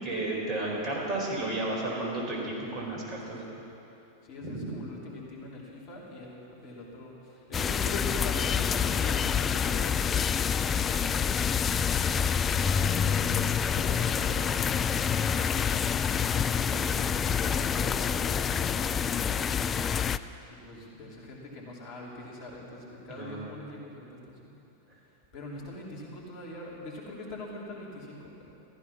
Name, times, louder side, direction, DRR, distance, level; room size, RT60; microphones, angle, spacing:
voice 1, 0.0-3.4 4.4-4.7 23.1-23.4, right 2 dB, 30° right, -3 dB, 4.7 m, -32 dB
voice 2, 4.2-10.1 12.1-19.7 20.5-24.5 25.3-28.5, left 1 dB, 45° left, -3 dB, 3.2 m, -43 dB
sound 1, 7.5-20.2, left 7 dB, 20° left, 0.4 m, -27 dB
15.5 x 14.0 x 6.0 m, 2.9 s
figure-of-eight pair, 90°, 0 cm